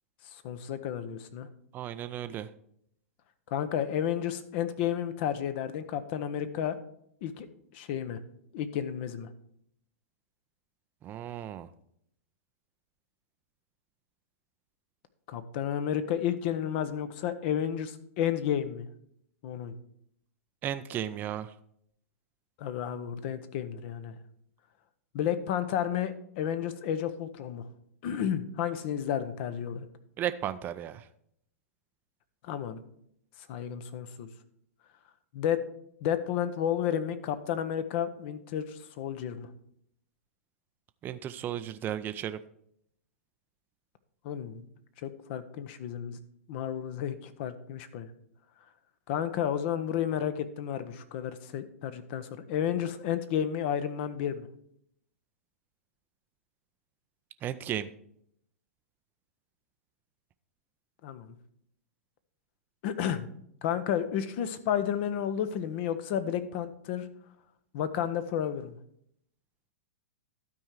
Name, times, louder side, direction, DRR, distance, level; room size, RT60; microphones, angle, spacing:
voice 1, 0.3-1.5 3.5-6.8 7.2-7.5 7.7-8.2 8.5-9.3 15.3-18.9 19.4-19.7 22.6-24.2 25.1-27.6 28.0-29.9 32.4-32.8 33.5-34.3 35.3-35.6 36.0-39.5 44.2-44.6 45.0-46.2 46.5-48.1 49.1-54.5 61.0-61.4 62.8-63.3 63.6-67.1 67.7-68.8, left 9 dB, 50° left, 12 dB, 0.8 m, -32 dB
voice 2, 1.7-2.5 11.0-11.7 20.6-21.5 30.2-31.1 41.0-42.4 57.4-57.9, right 10 dB, 25° right, 10 dB, 0.4 m, -34 dB
12.5 x 4.6 x 4.7 m, 0.70 s
hypercardioid pair, 115°, 8 cm